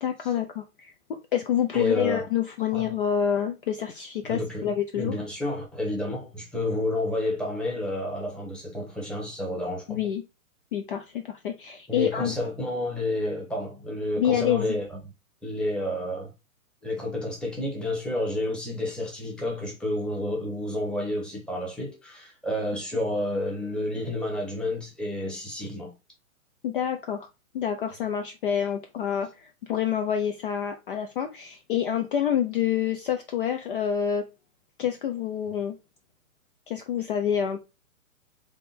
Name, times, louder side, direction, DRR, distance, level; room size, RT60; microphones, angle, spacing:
voice 1, 0.0-5.1 9.9-10.2 10.7-12.4 14.2-14.8 26.6-27.3 27.5-34.2 34.8-35.8 36.7-37.6, left 9 dB, 40° left, 0.5 m, -27 dB
voice 2, 1.7-2.2 2.7-2.9 4.2-4.7 4.9-10.0 11.9-15.0 15.4-16.3 16.8-25.9, left 1 dB, ahead, 1.0 m, -30 dB
3.8 x 3.4 x 4.1 m
hypercardioid pair, 145°, 44 cm